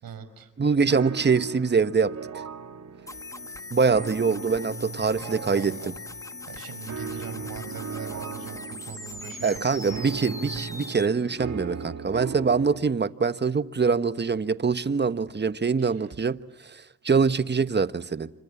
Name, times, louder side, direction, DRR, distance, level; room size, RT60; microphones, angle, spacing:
voice 1, 0.0-0.5 5.2-5.9 6.5-10.0 15.8-16.1, right 7 dB, 75° right, 5.1 m, -41 dB
voice 2, 0.6-2.4 3.7-5.9 9.4-18.3, right 5 dB, 30° right, 1.2 m, -24 dB
sound 1, 0.9-12.9, right 5 dB, 55° right, 3.0 m, -38 dB
sound 2, 3.1-11.1, left 3 dB, 10° left, 1.4 m, -40 dB
30.0 x 26.0 x 7.3 m
cardioid pair, 70°, 36 cm